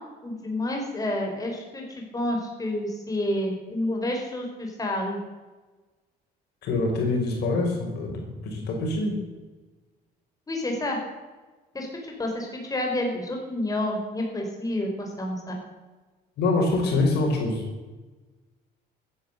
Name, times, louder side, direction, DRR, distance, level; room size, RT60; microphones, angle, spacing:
voice 1, 0.2-1.8 2.1-5.2 10.5-11.0 11.7-15.6, left 1 dB, 20° left, 1 dB, 4.7 m, -29 dB
voice 2, 6.6-9.2 16.4-17.7, left 2 dB, 75° left, 1 dB, 5.1 m, -25 dB
15.0 x 10.5 x 8.1 m, 1.2 s
cardioid pair, 110°, 17 cm